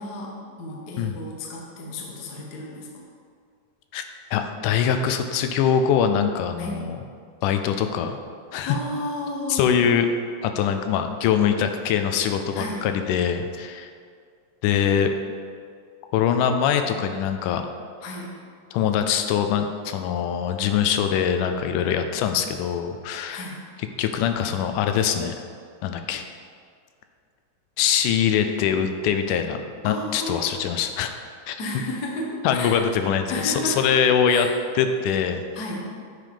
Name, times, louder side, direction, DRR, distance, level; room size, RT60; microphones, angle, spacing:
voice 1, 0.0-2.9 6.6-6.8 8.7-9.9 12.5-12.8 18.0-18.3 23.3-23.6 29.8-30.6 31.6-32.8 33.3-33.8 34.3-34.5 35.5-35.9, left 1 dB, 65° left, -2 dB, 0.9 m, -32 dB
voice 2, 4.3-7.0 7.4-8.2 8.5-8.8 9.5-10.1 10.4-13.9 14.6-15.1 16.1-17.6 18.7-23.5 24.0-25.4 25.8-26.2 27.8-31.1 31.5-31.6 32.4-34.5 34.8-35.4, left 8 dB, 80° left, 7 dB, 2.1 m, -23 dB
9.3 x 5.1 x 5.0 m, 2.2 s
omnidirectional pair, 3.7 m